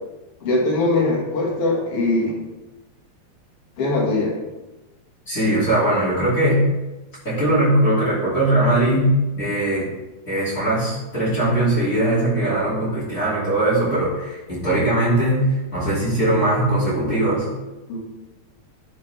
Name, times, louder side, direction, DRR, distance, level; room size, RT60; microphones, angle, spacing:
voice 1, 0.4-2.4 3.8-4.3 17.9-18.2, left 2 dB, 45° left, -3 dB, 2.5 m, -21 dB
voice 2, 5.3-6.7 7.2-9.9 10.3-17.5, right 1 dB, 25° left, -9 dB, 2.8 m, -20 dB
11.5 x 5.2 x 3.5 m, 1.1 s
omnidirectional pair, 4.3 m